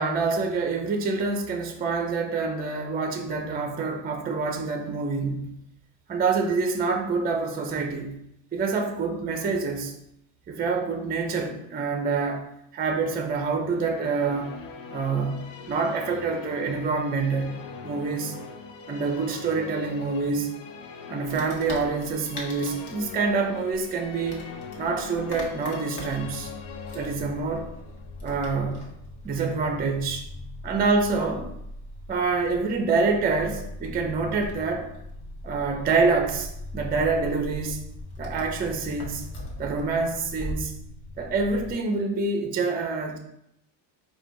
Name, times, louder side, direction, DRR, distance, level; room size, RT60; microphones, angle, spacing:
voice 1, 0.0-5.5 6.1-8.2 8.5-9.9 10.5-12.5 12.7-14.5 14.9-17.6 17.8-18.4 18.9-20.5 21.1-24.5 24.8-26.5 26.9-27.7 28.2-28.9 29.2-30.3 30.6-31.4 32.1-34.9 35.4-37.8 38.2-39.3 39.6-40.7 41.2-43.2, right 4 dB, 20° right, 5 dB, 0.4 m, -26 dB
Musical instrument, 13.6-29.1, left 6 dB, 90° left, 0.7 m, -42 dB
Wood, 21.2-40.6, left 1 dB, 55° left, 1.2 m, -44 dB
sound 1, 26.2-41.7, left 1 dB, 40° left, 1.0 m, -41 dB
4.3 x 2.2 x 3.7 m, 0.78 s
cardioid pair, 110°, 46 cm